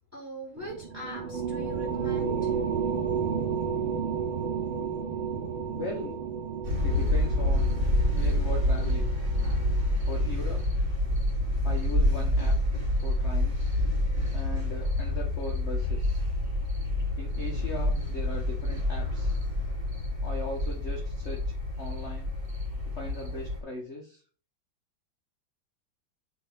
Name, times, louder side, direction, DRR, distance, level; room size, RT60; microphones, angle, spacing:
voice 1, 0.1-2.6, equal, 10° right, -4 dB, 2.6 m, -41 dB
sound 1, 0.6-10.3, right 6 dB, 80° right, 1.8 m, -32 dB
voice 2, 5.7-6.2 6.8-7.7 8.1-9.1 10.1-10.6 11.6-12.6 13.0-13.7 14.3-16.2 17.2-19.4 20.2-21.4 21.8-22.3 22.9-24.2, left 2 dB, 35° left, -1 dB, 1.4 m, -39 dB
sound 2, 6.6-23.6, left 1 dB, 25° right, 2.3 m, -27 dB
5.8 x 3.9 x 6.1 m, 0.41 s
omnidirectional pair, 2.2 m